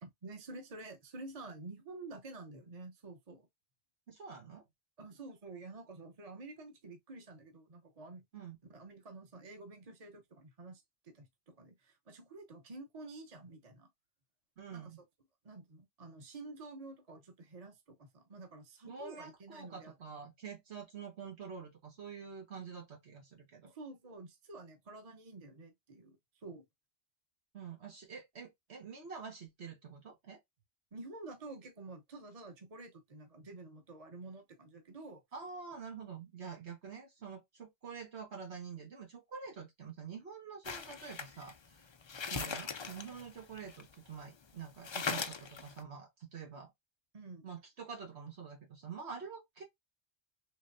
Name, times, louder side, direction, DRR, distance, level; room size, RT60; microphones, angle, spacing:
voice 1, 0.0-3.5 5.0-8.2 8.7-13.9 14.7-14.9 15.4-19.9 23.6-26.7 30.9-35.2 47.1-47.5, right 2 dB, 35° right, 0.9 m, -50 dB
voice 2, 4.1-4.6 8.3-8.6 14.6-15.0 18.8-23.7 27.5-30.4 35.3-41.8 42.3-46.7 47.4-49.6, right 6 dB, 80° right, 1.7 m, -47 dB
sound 1, 40.6-44.2 44.5-44.6 44.8-45.8, left 5 dB, 45° left, 0.3 m, -40 dB
3.9 x 3.2 x 2.6 m
omnidirectional pair, 1.1 m